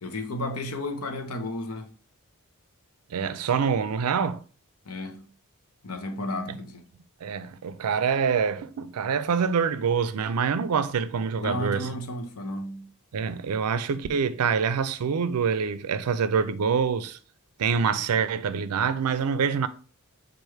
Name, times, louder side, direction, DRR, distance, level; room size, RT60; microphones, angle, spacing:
voice 1, 0.0-1.9 4.8-5.3 5.8-6.9 11.4-12.9, left 1 dB, 75° left, 0.8 m, -33 dB
voice 2, 3.1-4.4 6.5-6.6 7.2-11.9 13.1-17.2 17.6-19.7, right 6 dB, 80° right, 0.4 m, -25 dB
4.8 x 2.5 x 4.4 m
head